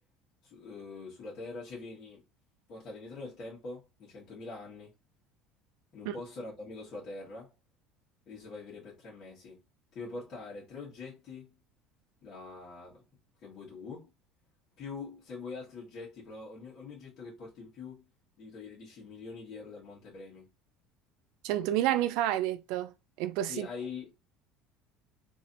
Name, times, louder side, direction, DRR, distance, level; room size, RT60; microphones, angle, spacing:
voice 1, 0.4-2.2 2.7-4.9 5.9-7.5 8.3-9.6 9.9-11.5 12.2-13.0 13.4-14.1 14.8-18.1 18.4-20.5 23.4-24.1, left 4 dB, 40° left, 1.5 m, -44 dB
voice 2, 21.4-22.9 23.2-23.7, right 13 dB, 70° right, 0.3 m, -29 dB
3.1 x 2.8 x 2.6 m
cardioid pair, 160°, 0 cm